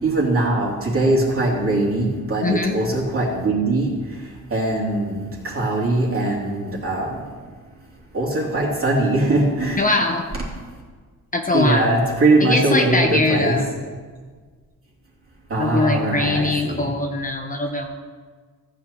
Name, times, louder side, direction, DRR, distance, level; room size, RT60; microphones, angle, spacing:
voice 1, 0.0-4.2 4.5-7.1 8.1-9.9 11.5-13.6 15.5-16.9, right 2 dB, 40° right, -4 dB, 2.8 m, -21 dB
voice 2, 2.4-2.7 9.8-10.3 11.3-11.8 12.4-13.6 15.6-17.9, left 2 dB, 25° left, 3 dB, 0.7 m, -21 dB
14.5 x 8.4 x 3.0 m, 1.5 s
cardioid pair, 110°, 35 cm